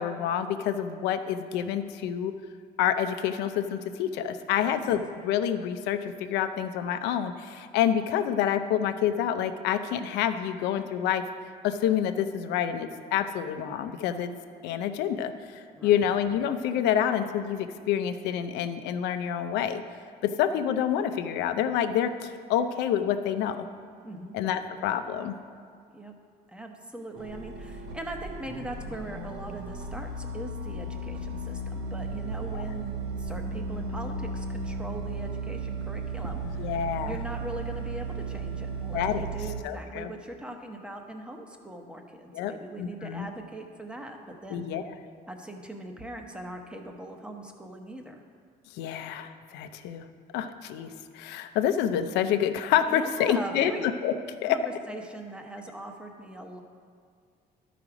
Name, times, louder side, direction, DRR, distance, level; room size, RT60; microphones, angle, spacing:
voice 1, 0.0-2.3 2.8-11.2 11.6-14.3 14.6-15.3 15.8-19.8 20.2-23.7 24.3-25.3 32.5-32.6 36.6-37.2 38.9-39.3 39.6-40.1 42.3-42.5 42.8-43.3 44.5-44.8 48.7-50.0 50.3-54.1 54.4-54.6, left 9 dB, 90° left, 9 dB, 0.6 m, -27 dB
voice 2, 24.0-24.4 25.9-26.1 26.5-32.9 33.2-44.7 45.3-48.2 52.9-53.8 54.4-56.6, right 1 dB, 5° right, 3 dB, 1.0 m, -40 dB
sound 1, 27.1-39.6, right 3 dB, 90° right, 1.2 m, -35 dB
12.0 x 5.1 x 4.9 m, 2.2 s
cardioid pair, 110°, 17 cm